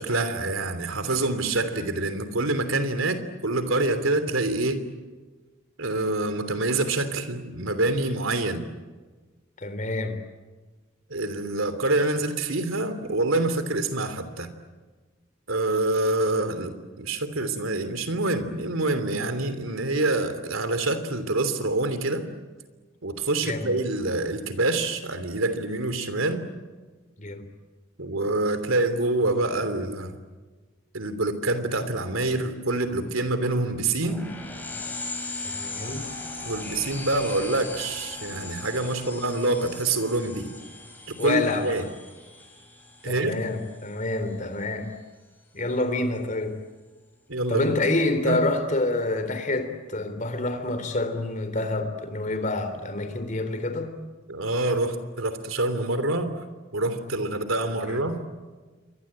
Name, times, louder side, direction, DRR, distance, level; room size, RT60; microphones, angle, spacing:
voice 1, 0.0-4.8 5.8-8.6 11.1-14.5 15.5-22.3 23.0-26.5 28.0-30.2 30.9-34.3 36.4-40.5 41.1-41.8 43.0-43.4 47.3-47.7 48.2-48.4 54.3-56.3 56.7-58.2, right 2 dB, 85° right, 3.1 m, -26 dB
voice 2, 9.6-10.2 23.4-23.7 27.2-27.5 35.5-36.1 39.0-39.1 41.2-41.7 43.0-44.9 45.5-46.6 47.5-53.9 57.9-58.0, left 2 dB, 40° left, 3.5 m, -27 dB
sound 1, 34.0-44.2, left 3 dB, 10° left, 5.9 m, -38 dB
28.5 x 23.5 x 8.8 m
head